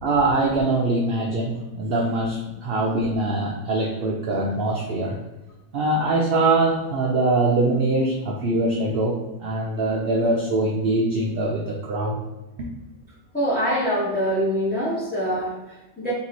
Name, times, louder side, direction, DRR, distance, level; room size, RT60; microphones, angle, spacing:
voice 1, 0.0-5.2 5.7-12.2 12.6-12.7 14.7-14.8, right 2 dB, 60° right, -1 dB, 0.6 m, -23 dB
voice 2, 13.3-16.1, equal, 10° left, -9 dB, 0.8 m, -24 dB
3.6 x 3.0 x 4.0 m, 1.0 s
omnidirectional pair, 1.4 m